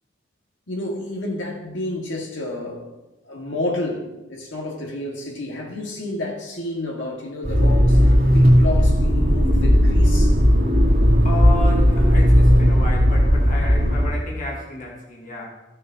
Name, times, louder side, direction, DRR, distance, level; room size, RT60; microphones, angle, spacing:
voice 1, 0.7-2.9 3.2-10.4, left 1 dB, 80° left, 1.9 m, -30 dB
Motor vehicle (road), 7.4-14.1, equal, 60° right, 2.5 m, -16 dB
voice 2, 11.2-15.4, left 2 dB, 45° left, 1.6 m, -32 dB
14.5 x 6.4 x 2.9 m
head